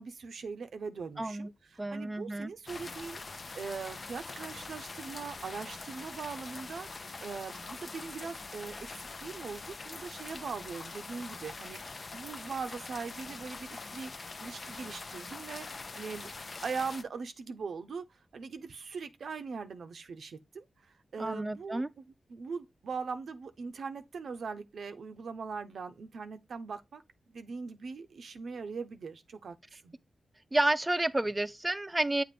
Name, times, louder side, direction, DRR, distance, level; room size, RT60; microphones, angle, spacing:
voice 1, 0.0-14.1 14.4-15.7 15.9-16.3 16.6-27.0 27.3-29.6 29.8-29.9, right 5 dB, 75° right, 0.5 m, -41 dB
voice 2, 1.2-1.5 1.8-2.5 21.2-21.9 30.5-32.2, right 2 dB, 20° right, 0.5 m, -30 dB
sound 1, 2.7-17.0, left 3 dB, 50° left, 0.4 m, -44 dB
7.4 x 2.5 x 5.0 m
cardioid pair, 45°, 0 cm